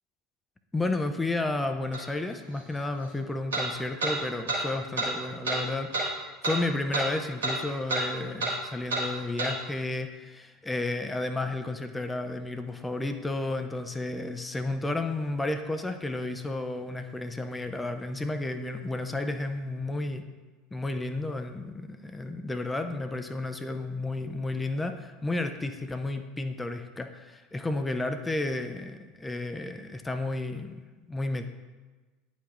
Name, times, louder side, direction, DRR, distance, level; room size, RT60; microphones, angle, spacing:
voice 1, 0.7-6.2 6.4-20.2 20.7-30.8 31.1-31.5, left 2 dB, 15° left, 7 dB, 0.5 m, -32 dB
sound 1, 1.9-2.0 3.5-3.7 4.0-4.1 4.5-4.6 5.0-5.1 5.4-5.6 5.9-6.1 6.4-6.6 6.9-7.1 7.4-7.6 7.9-8.0 8.4-8.5 8.9-9.0 9.4-9.5, right 2 dB, 75° right, 1.5 m, -28 dB
9.9 x 4.8 x 2.5 m, 1.3 s
figure-of-eight pair, 70°, 0 cm